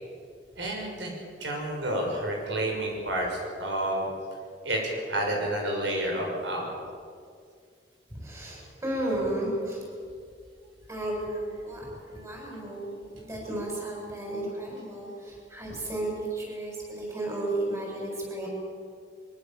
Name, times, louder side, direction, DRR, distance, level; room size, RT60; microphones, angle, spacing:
voice 1, 0.5-4.1 4.6-6.7, right 1 dB, 90° right, 0 dB, 6.4 m, -30 dB
voice 2, 8.1-9.9 10.9-18.5, right 1 dB, 15° right, -2 dB, 7.0 m, -33 dB
23.5 x 23.0 x 7.3 m, 2.2 s
head